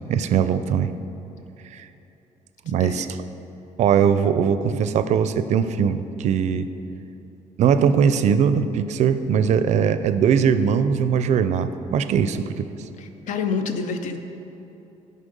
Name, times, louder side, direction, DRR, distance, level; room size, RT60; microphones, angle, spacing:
voice 1, 0.1-0.9 1.7-1.9 2.7-3.1 3.8-6.7 7.6-12.7, right 7 dB, 60° right, 12 dB, 0.4 m, -20 dB
voice 2, 2.7-3.1 13.0-14.2, left 5 dB, 70° left, 7 dB, 0.7 m, -28 dB
10.0 x 5.4 x 5.3 m, 2.9 s
cardioid pair, 155°, 13 cm